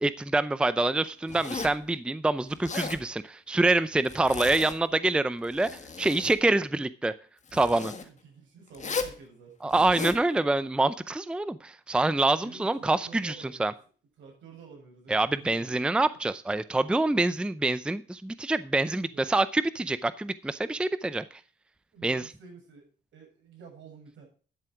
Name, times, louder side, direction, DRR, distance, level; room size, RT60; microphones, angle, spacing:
voice 1, 0.0-5.7 6.0-7.1 7.5-7.9 9.6-13.7 15.1-21.4 22.0-22.3, right 2 dB, 5° right, 15 dB, 0.5 m, -26 dB
Zipper (clothing), 1.3-1.8 2.5-3.0 4.0-4.9 5.4-6.4 7.5-8.0 8.7-9.2 9.7-10.2, left 4 dB, 35° left, 1.7 m, -36 dB
voice 2, 7.9-9.5 12.4-13.8 14.2-15.8 18.8-19.3 21.9-24.3, right 5 dB, 75° right, 1 dB, 6.9 m, -50 dB
12.0 x 7.5 x 4.9 m, 0.40 s
cardioid pair, 90°, 20 cm